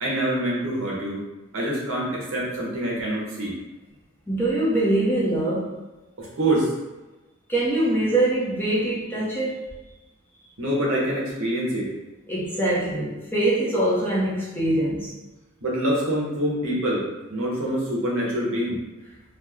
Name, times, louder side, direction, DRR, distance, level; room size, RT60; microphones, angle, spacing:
voice 1, 0.0-1.2 1.5-3.5 6.2-6.7 10.6-11.8 15.6-17.0 17.3-18.8, right 1 dB, 65° right, -4 dB, 1.0 m, -25 dB
voice 2, 4.3-5.8 7.5-9.7 12.3-15.1, right 1 dB, 10° left, -7 dB, 0.7 m, -23 dB
3.1 x 2.1 x 3.4 m, 1.1 s
head